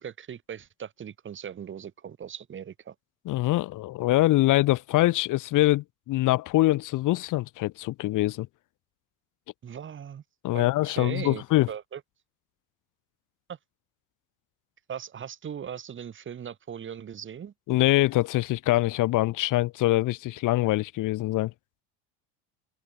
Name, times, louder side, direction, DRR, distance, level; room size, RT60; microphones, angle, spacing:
voice 1, 0.0-2.9 9.6-10.2 10.5-12.0 13.5-13.6 14.9-17.5, right 8 dB, 30° right, 3.2 m, -39 dB
voice 2, 3.2-8.5 10.4-11.7 17.7-21.5, left 17 dB, 55° left, 1.5 m, -24 dB
open air
cardioid pair, 140°, 39 cm